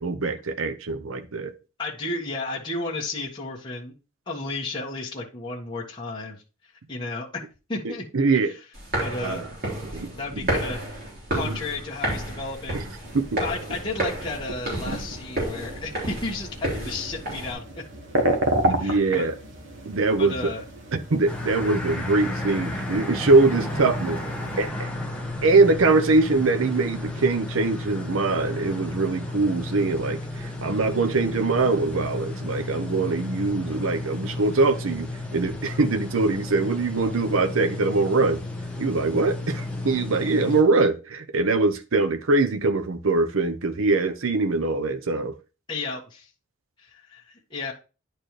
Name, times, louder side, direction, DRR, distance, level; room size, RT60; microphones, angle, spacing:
voice 1, 0.0-1.5 7.8-8.5 9.2-9.5 9.9-10.6 11.3-11.5 12.7-12.9 13.1-13.4 18.6-19.4 19.9-20.5 20.9-24.2 24.6-24.9 25.4-38.4 38.8-45.3, right 3 dB, 85° right, 0.7 m, -23 dB
voice 2, 1.8-3.9 4.3-6.4 6.9-7.3 7.7-8.0 8.3-8.4 9.0-9.4 10.1-10.8 11.3-12.8 13.4-17.6 18.8-19.3 20.2-20.6 45.7-46.3 46.8-47.7, left 3 dB, 20° left, 1.5 m, -33 dB
sound 1, 8.7-17.5, right 1 dB, 45° right, 3.6 m, -31 dB
sound 2, 13.0-24.7, right 1 dB, 65° right, 1.6 m, -32 dB
sound 3, 21.3-40.6, left 2 dB, 5° left, 1.4 m, -33 dB
10.5 x 4.5 x 3.2 m
head